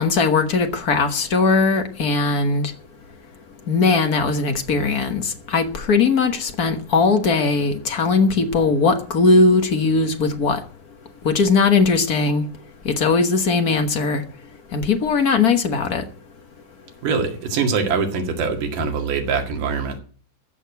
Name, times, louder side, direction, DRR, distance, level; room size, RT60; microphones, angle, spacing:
voice 1, 0.0-2.7 3.7-10.6 11.2-12.5 12.8-14.2 14.7-16.0, left 4 dB, 55° left, 1.0 m, -19 dB
voice 2, 17.0-20.0, right 5 dB, 85° right, 3.7 m, -23 dB
14.5 x 6.7 x 8.2 m
omnidirectional pair, 3.7 m